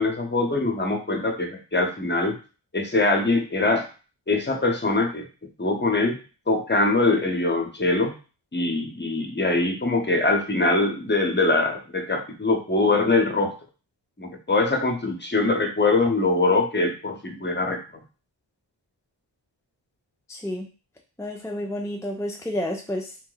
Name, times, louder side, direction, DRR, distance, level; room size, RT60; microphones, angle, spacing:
voice 1, 0.0-2.3 2.7-3.9 4.3-5.3 5.6-6.2 6.5-8.1 8.5-13.5 14.2-17.8, left 2 dB, 25° left, 3 dB, 0.7 m, -23 dB
voice 2, 20.3-20.7 21.2-23.2, left 1 dB, 5° left, 1 dB, 0.3 m, -30 dB
2.9 x 2.1 x 3.9 m, 0.35 s
wide cardioid pair, 50°, 45 cm